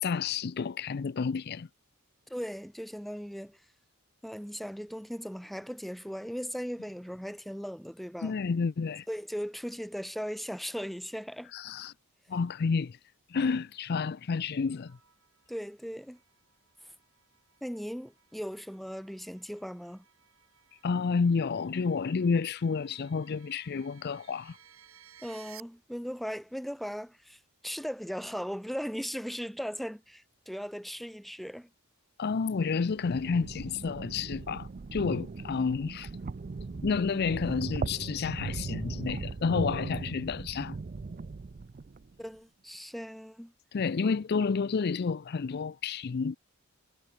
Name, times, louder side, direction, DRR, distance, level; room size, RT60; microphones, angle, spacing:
voice 1, 0.0-1.7 8.2-9.1 11.5-11.9 12.3-13.0 13.3-15.0 20.8-24.6 32.2-36.1 36.8-40.8 43.7-46.4, left 5 dB, 45° left, 0.4 m, -30 dB
voice 2, 2.3-3.6 4.2-8.4 9.1-11.5 15.5-16.2 17.6-20.0 25.2-31.7 42.2-43.5, equal, ahead, 0.9 m, -38 dB
sound 1, 14.7-25.6, right 10 dB, 70° right, 7.1 m, -59 dB
sound 2, 32.9-42.1, right 4 dB, 40° right, 0.4 m, -38 dB
head